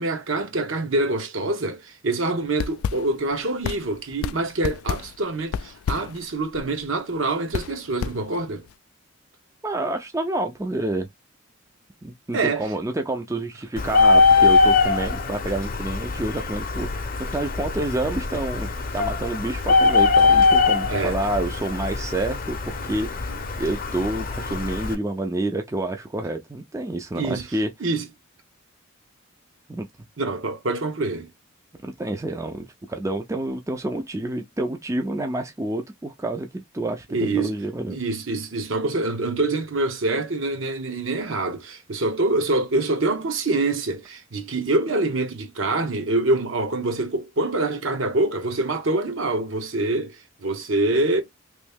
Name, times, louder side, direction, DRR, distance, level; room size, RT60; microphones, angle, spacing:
voice 1, 0.0-8.6 12.3-12.7 20.9-21.2 27.1-27.4 27.8-28.1 30.2-31.3 37.1-37.5 37.9-51.2, right 2 dB, 65° right, 0.9 m, -25 dB
sound 1, 2.5-8.7, left 7 dB, 90° left, 0.3 m, -32 dB
voice 2, 9.6-11.1 12.0-23.3 23.6-27.7 29.7-29.9 31.8-38.0, right 1 dB, 15° right, 0.4 m, -28 dB
Bird, 13.8-24.9, left 4 dB, 40° left, 0.6 m, -21 dB
3.1 x 2.6 x 3.4 m
head